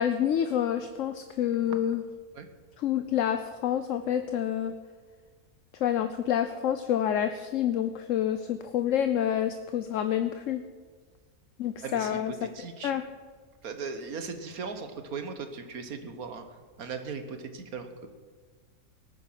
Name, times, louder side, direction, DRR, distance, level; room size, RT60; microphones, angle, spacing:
voice 1, 0.0-2.0 2.8-4.7 5.8-10.6 11.6-12.5 12.8-13.0, left 10 dB, 65° left, 9 dB, 1.0 m, -28 dB
voice 2, 11.8-12.9 13.6-18.1, right 5 dB, 85° right, 8 dB, 1.8 m, -38 dB
18.5 x 9.4 x 5.9 m, 1.5 s
omnidirectional pair, 1.5 m